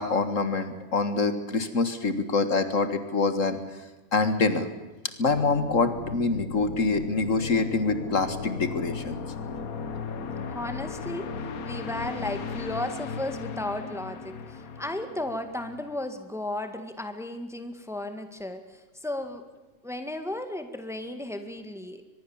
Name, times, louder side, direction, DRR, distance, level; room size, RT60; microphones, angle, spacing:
voice 1, 0.0-3.6 4.1-4.7 5.2-9.2, left 3 dB, 60° left, 10 dB, 2.0 m, -25 dB
sound 1, 5.3-16.0, left 5 dB, 75° left, 1.6 m, -36 dB
voice 2, 10.5-11.3 11.6-19.4 19.8-22.0, left 1 dB, ahead, 8 dB, 1.8 m, -34 dB
24.0 x 21.5 x 7.3 m, 1.2 s
omnidirectional pair, 1.5 m